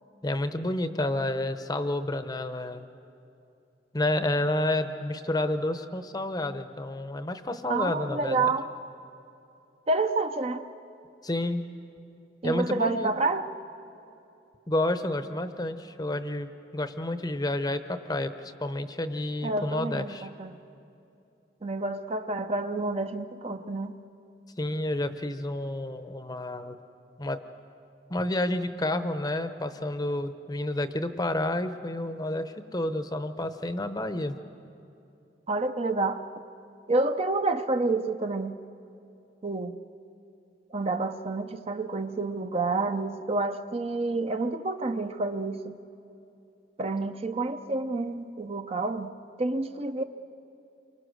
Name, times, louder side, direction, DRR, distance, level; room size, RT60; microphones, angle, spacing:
voice 1, 0.2-2.9 3.9-8.5 11.2-11.6 12.4-13.1 14.7-20.3 24.6-26.8 27.2-27.4 28.1-34.3, left 1 dB, 20° left, 9 dB, 0.8 m, -30 dB
voice 2, 7.7-8.7 9.9-10.7 12.4-13.5 19.4-20.6 21.6-24.0 35.5-36.2 36.9-38.6 39.4-39.8 40.7-45.8 46.8-50.0, right 3 dB, 35° right, 8 dB, 0.7 m, -29 dB
27.5 x 24.5 x 6.4 m, 2.7 s
head